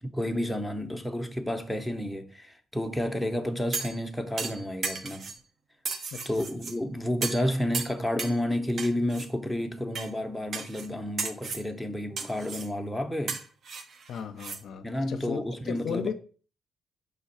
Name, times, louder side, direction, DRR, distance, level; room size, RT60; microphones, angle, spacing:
voice 1, 0.0-5.3 6.3-13.4 14.8-16.1, left 1 dB, ahead, 0.6 m, -31 dB
sound 1, 3.7-4.0 4.4-5.4 5.8-6.7 7.2-7.5 7.7-8.4 8.8-9.3 9.9-10.1 10.5-10.9 11.2-11.7 12.2-12.7 13.3-14.6 14.9-15.0, right 4 dB, 55° right, 0.6 m, -35 dB
voice 2, 6.1-6.5 14.1-16.1, left 7 dB, 70° left, 0.4 m, -35 dB
5.1 x 2.3 x 4.1 m
cardioid pair, 90°, 0 cm